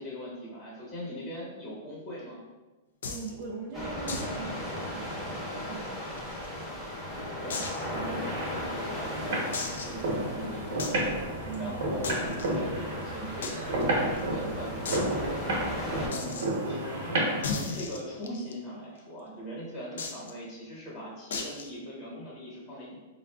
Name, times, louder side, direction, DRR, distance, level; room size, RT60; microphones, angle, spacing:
voice 1, 0.0-2.4 7.4-11.0 11.6-23.0, equal, 25° left, -7 dB, 1.1 m, -41 dB
sound 1, 3.0-3.3 4.1-4.4 4.6-4.7 5.1-5.2 5.9-6.6 7.5-7.9 8.4-8.5 9.5-10.0 10.8-11.0 12.0-12.5 13.4-13.5 13.8-13.9 14.2-14.3 14.8-15.1 16.1-16.5 17.4-18.5 20.0-20.3 21.3-21.7, left 4 dB, 85° left, 0.4 m, -35 dB
voice 2, 3.0-6.2 11.5-12.0, right 5 dB, 45° right, -4 dB, 0.5 m, -41 dB
sound 2, 3.7-16.1, left 1 dB, 10° left, 0.8 m, -37 dB
sound 3, 7.9-17.4, right 1 dB, 65° right, 0.9 m, -32 dB
3.8 x 2.3 x 2.3 m, 1.2 s
hypercardioid pair, 140°, 0 cm